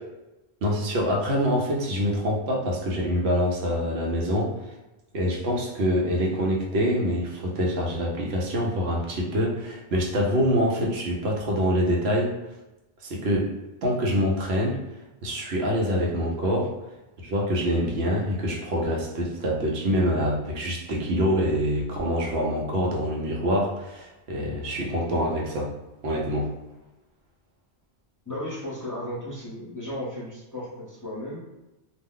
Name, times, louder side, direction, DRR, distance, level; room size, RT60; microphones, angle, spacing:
voice 1, 0.6-4.6 5.1-12.3 13.0-13.5 13.8-14.8 15.2-16.7 17.2-25.7 26.0-26.5, equal, 80° right, -1 dB, 1.0 m, -25 dB
voice 2, 28.3-31.4, left 1 dB, 20° left, -8 dB, 0.7 m, -35 dB
2.4 x 2.1 x 3.7 m, 0.99 s
omnidirectional pair, 1.1 m